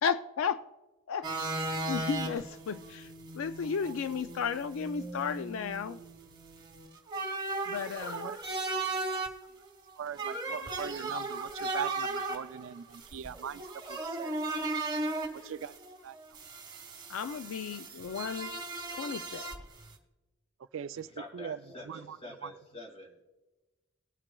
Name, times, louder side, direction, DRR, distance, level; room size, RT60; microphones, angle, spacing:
voice 1, 0.0-0.6 1.1-6.0 7.7-8.3 15.4-15.5 17.1-18.6 18.9-19.5, left 6 dB, 65° left, 11 dB, 0.3 m, -34 dB
sound 1, 1.2-19.9, right 2 dB, 20° right, 1.3 m, -37 dB
voice 2, 10.0-13.6 13.9-14.3 15.3-15.8 16.0-16.1 20.7-21.1 21.3-21.6 21.9-22.2 22.4-22.5, right 8 dB, 60° right, 14 dB, 0.3 m, -40 dB
voice 3, 21.2-23.2, left 1 dB, 25° left, 2 dB, 2.1 m, -46 dB
19.5 x 8.8 x 2.3 m, 1.1 s
head